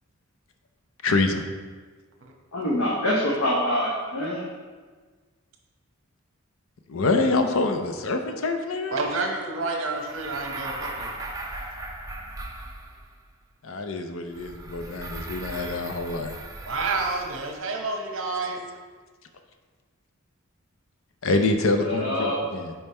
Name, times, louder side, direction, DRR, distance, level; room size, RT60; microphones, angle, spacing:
voice 1, 1.0-1.4 6.9-9.0 13.6-16.4 21.2-22.7, left 3 dB, 60° left, 6 dB, 0.5 m, -25 dB
voice 2, 2.5-4.4 21.8-22.4, left 1 dB, 80° left, -5 dB, 1.0 m, -25 dB
voice 3, 8.9-11.1 16.7-18.6, right 3 dB, 60° right, 2 dB, 0.9 m, -29 dB
sound 1, 10.0-13.2 14.3-17.5, right 2 dB, 15° right, 0.5 m, -38 dB
5.3 x 4.5 x 4.3 m, 1.4 s
head